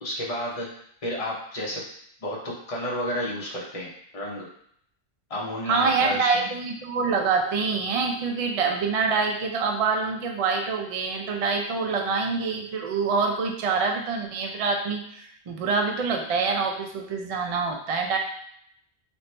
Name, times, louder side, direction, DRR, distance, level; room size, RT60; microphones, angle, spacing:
voice 1, 0.0-0.7 1.0-1.8 2.2-4.5 5.3-6.5, equal, 35° left, -4 dB, 0.9 m, -31 dB
voice 2, 5.7-18.2, right 4 dB, 55° right, 3 dB, 0.4 m, -26 dB
3.0 x 2.9 x 3.2 m, 0.67 s
omnidirectional pair, 1.1 m